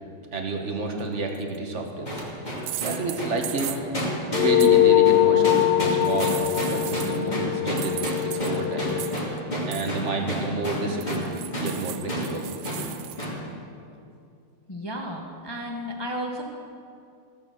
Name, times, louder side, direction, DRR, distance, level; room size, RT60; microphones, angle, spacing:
voice 1, 0.3-2.2 2.8-3.7 4.4-6.4 6.7-8.0 8.3-8.9 9.7-11.3 11.6-12.4, right 3 dB, 40° right, 3 dB, 1.4 m, -30 dB
sound 1, 1.3-1.6 2.6-4.1 4.6-4.7 5.9-7.3 7.8-9.4 9.7-10.0 11.0-13.3, right 15 dB, 90° right, 1.5 m, -37 dB
sound 2, 2.1-11.3 11.5-11.7 12.1-12.3 12.6-12.8 13.2-13.4, equal, 20° left, 2.6 m, -30 dB
sound 3, 4.3-9.1, left 13 dB, 65° left, 1.2 m, -22 dB
voice 2, 14.7-16.4, equal, 40° left, 1 dB, 0.3 m, -33 dB
16.5 x 7.6 x 6.4 m, 2.5 s
omnidirectional pair, 2.3 m